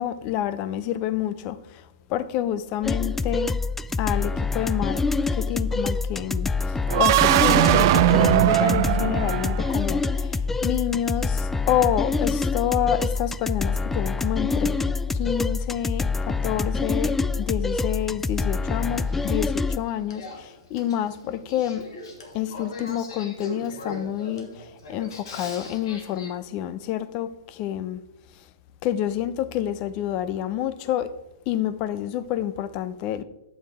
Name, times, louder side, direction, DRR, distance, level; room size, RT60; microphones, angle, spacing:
voice 1, 0.0-1.8 2.1-3.6 4.0-5.0 5.3-14.8 15.1-21.9 22.3-28.0 28.8-31.1 31.5-33.2, left 11 dB, 40° left, 15 dB, 0.8 m, -28 dB
sound 1, 2.8-19.8, left 3 dB, 10° left, 0.4 m, -26 dB
sound 2, 6.9-9.9, right 14 dB, 50° right, 0.6 m, -20 dB
Male speech man speaking / Female speech woman speaking / Conversation, 18.6-26.3, left 2 dB, 70° left, 2.8 m, -40 dB
12.0 x 8.7 x 3.6 m, 0.93 s
hypercardioid pair, 120°, 3 cm